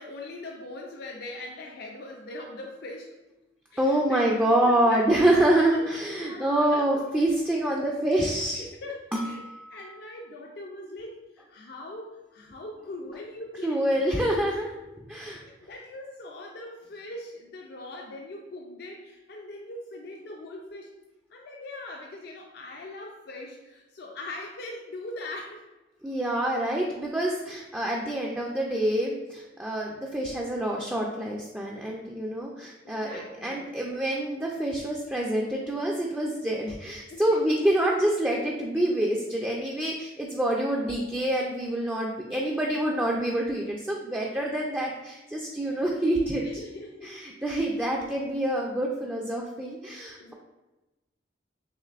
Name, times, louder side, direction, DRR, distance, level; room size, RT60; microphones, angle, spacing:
voice 1, 0.0-3.2 3.7-4.2 4.6-5.5 5.8-7.0 8.2-9.4 9.7-14.4 15.1-20.9 21.3-25.6 32.8-33.6 37.1-37.4 46.4-47.2 50.2-50.3, left 2 dB, 60° left, 0 dB, 0.4 m, -41 dB
voice 2, 3.8-8.7 9.1-9.8 13.6-14.7 15.1-15.4 26.0-46.4 47.0-50.3, right 1 dB, 10° right, -2 dB, 0.4 m, -26 dB
6.4 x 2.5 x 2.4 m, 1.0 s
head